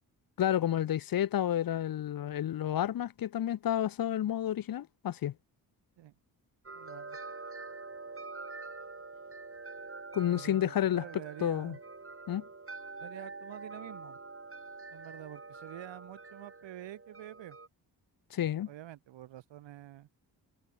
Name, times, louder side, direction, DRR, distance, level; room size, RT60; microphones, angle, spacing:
voice 1, 0.4-5.3 10.1-11.0 11.4-11.8 12.3-12.4 18.3-18.7, left 11 dB, 55° left, 0.7 m, -30 dB
sound 1, 6.7-17.7, right 3 dB, 30° right, 6.6 m, -46 dB
voice 2, 6.7-7.2 10.3-11.8 13.0-14.2 14.9-17.6 18.7-20.1, right 13 dB, 85° right, 2.7 m, -47 dB
cardioid pair, 60°, 43 cm